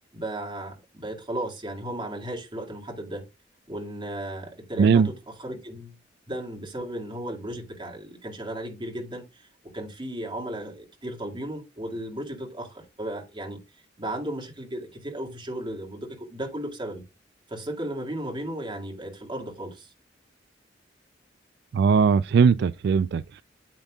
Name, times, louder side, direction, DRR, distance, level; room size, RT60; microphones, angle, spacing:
voice 1, 0.1-3.2 3.7-6.0 6.3-13.6 14.0-17.0 17.5-19.9, right 1 dB, 25° right, 2.2 m, -35 dB
voice 2, 4.8-5.1 21.7-23.4, right 6 dB, 65° right, 0.3 m, -19 dB
8.8 x 8.2 x 2.3 m
head